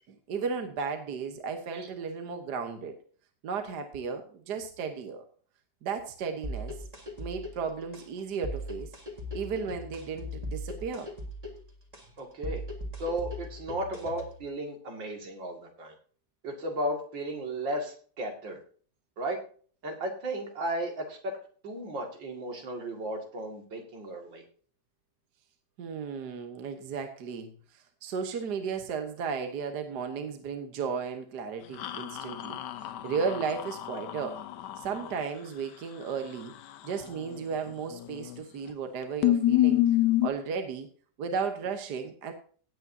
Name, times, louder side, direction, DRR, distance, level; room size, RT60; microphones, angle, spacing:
voice 1, 0.1-3.0 3.4-5.2 5.8-6.8 7.2-8.9 9.3-11.1 25.8-34.4 34.8-36.5 36.8-39.8 40.2-40.9 41.2-42.3, right 5 dB, 65° right, 6 dB, 1.7 m, -34 dB
sound 1, 6.4-14.4, left 1 dB, 20° right, 1.8 m, -39 dB
voice 2, 12.2-12.6 13.0-15.9 16.4-18.6 19.2-19.4 19.8-21.4 21.6-24.4, right 1 dB, 90° right, 2 dB, 3.0 m, -35 dB
sound 2, 31.8-35.2 37.9-38.4 38.7-38.8 39.2-40.3, left 14 dB, 70° left, 1.3 m, -28 dB
17.0 x 8.6 x 2.7 m, 0.44 s
omnidirectional pair, 2.0 m